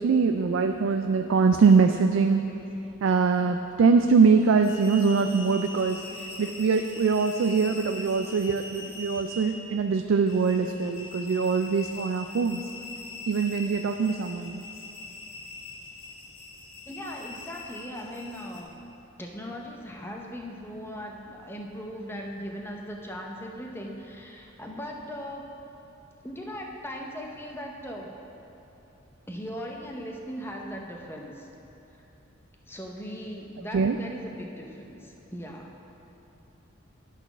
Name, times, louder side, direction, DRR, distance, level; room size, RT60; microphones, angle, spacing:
voice 1, 0.0-2.4 3.0-12.6 13.3-14.7 33.7-34.0, right 5 dB, 70° right, 6 dB, 0.3 m, -23 dB
sound 1, 4.4-18.6, left 3 dB, 90° left, 1.1 m, -42 dB
voice 2, 16.8-18.8 19.2-25.5 26.2-28.1 29.3-31.5 31.9-32.0 32.7-35.7, equal, 10° left, 0 dB, 0.7 m, -39 dB
11.5 x 4.1 x 5.8 m, 2.9 s
head